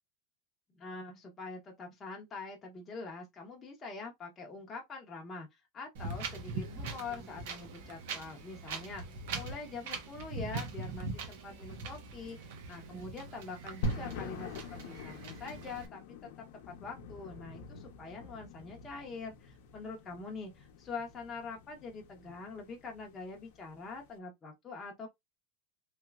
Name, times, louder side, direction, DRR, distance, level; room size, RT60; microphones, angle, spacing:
voice 1, 0.8-9.0 9.3-12.4 12.7-16.0 16.7-25.1, left 4 dB, 20° left, 0.7 m, -44 dB
Wind, 5.9-15.9, right 4 dB, 70° right, 0.9 m, -42 dB
sound 1, 13.8-24.1, left 1 dB, 70° left, 0.7 m, -44 dB
3.2 x 2.9 x 2.3 m
supercardioid pair, 165°, 0 cm